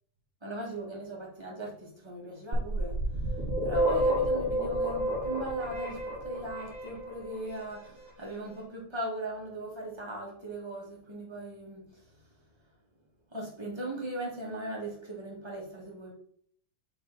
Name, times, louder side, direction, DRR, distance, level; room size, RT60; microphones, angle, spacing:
voice 1, 0.4-2.9 3.6-11.8 13.3-16.1, right 1 dB, 20° right, -4 dB, 1.8 m, -39 dB
sound 1, 2.5-7.4, right 1 dB, 40° right, 2.1 m, -30 dB
7.8 x 3.4 x 4.0 m, 0.63 s
omnidirectional pair, 1.6 m